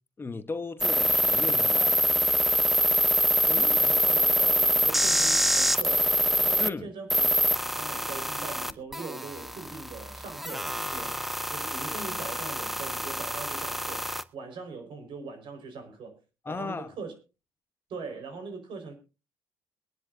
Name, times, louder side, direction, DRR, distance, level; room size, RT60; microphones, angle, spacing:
voice 1, 0.2-2.0 6.6-6.9 16.4-16.9, left 4 dB, 25° left, 1.1 m, -35 dB
sound 1, 0.8-6.7 7.1-14.2, equal, ahead, 0.8 m, -25 dB
voice 2, 3.4-7.3 7.6-16.2 16.5-17.1 17.9-18.9, right 4 dB, 60° right, 4.8 m, -41 dB
23.0 x 10.0 x 2.6 m
cardioid pair, 90°, 9 cm